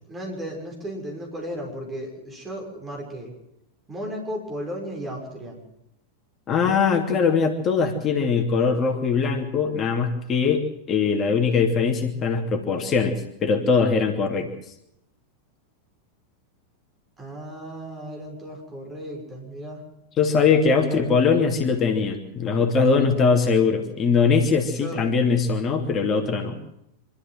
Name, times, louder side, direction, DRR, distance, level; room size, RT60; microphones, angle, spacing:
voice 1, 0.1-3.3 3.9-5.6 17.2-19.8 20.8-21.1 24.7-25.0, equal, 20° right, 1 dB, 6.6 m, -35 dB
voice 2, 6.5-14.5 20.2-26.6, left 5 dB, 25° left, 3 dB, 2.9 m, -21 dB
26.0 x 13.5 x 7.8 m, 0.81 s
figure-of-eight pair, 90°, 0 cm